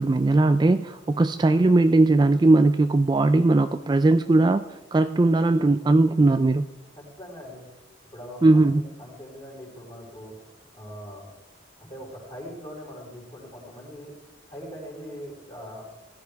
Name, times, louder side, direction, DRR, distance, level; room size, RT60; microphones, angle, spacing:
voice 1, 0.0-4.7 4.9-6.7 8.4-8.8, right 2 dB, 25° right, 9 dB, 0.3 m, -19 dB
voice 2, 7.0-7.6 8.1-10.4 10.7-11.2 11.8-14.1 14.5-15.8, equal, 30° left, -4 dB, 4.3 m, -41 dB
17.0 x 11.5 x 3.5 m, 1.0 s
head